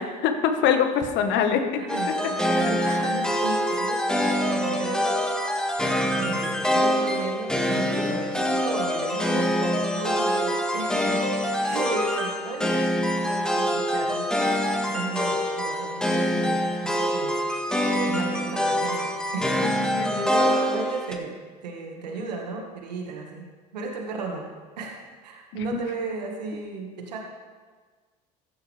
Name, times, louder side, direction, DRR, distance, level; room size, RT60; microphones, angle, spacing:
voice 1, 0.0-1.6 19.6-20.1, left 7 dB, 60° left, 6 dB, 1.5 m, -23 dB
voice 2, 1.8-5.8 6.2-12.7 13.1-14.5 14.9-17.4 17.9-23.5 23.7-24.5 24.8-24.9 25.2-27.2, right 3 dB, 85° right, 1 dB, 1.9 m, -34 dB
sound 1, 1.9-21.1, equal, 5° left, 1.8 m, -25 dB
14.5 x 10.5 x 3.5 m, 1.4 s
hypercardioid pair, 70°, 21 cm